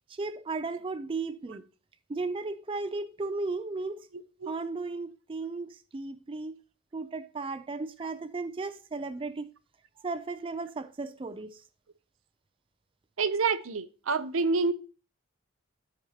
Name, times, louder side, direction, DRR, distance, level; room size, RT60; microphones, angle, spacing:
voice 1, 0.2-1.6 2.1-4.0 4.5-5.7 5.9-6.5 6.9-9.5 10.0-11.6, right 3 dB, 25° right, 0.4 m, -35 dB
voice 2, 4.1-4.5 8.0-8.1 13.2-14.7, right 4 dB, 90° right, 0.7 m, -28 dB
12.5 x 5.2 x 2.9 m
head